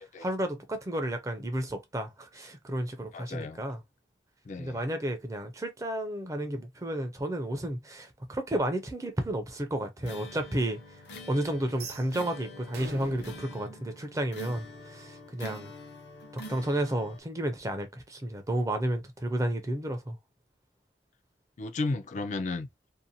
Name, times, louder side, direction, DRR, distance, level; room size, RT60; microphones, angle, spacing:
voice 1, 0.2-3.8 4.6-10.8 11.3-15.7 16.3-20.2, right 1 dB, 20° right, 0.4 m, -32 dB
voice 2, 3.1-3.7 4.5-4.8 21.6-22.7, left 3 dB, 40° left, 0.3 m, -34 dB
sound 1, 10.0-17.2, left 1 dB, 70° left, 0.7 m, -46 dB
Closing Metal Door, 11.7-14.8, right 3 dB, 60° right, 0.6 m, -44 dB
2.6 x 2.1 x 2.7 m
head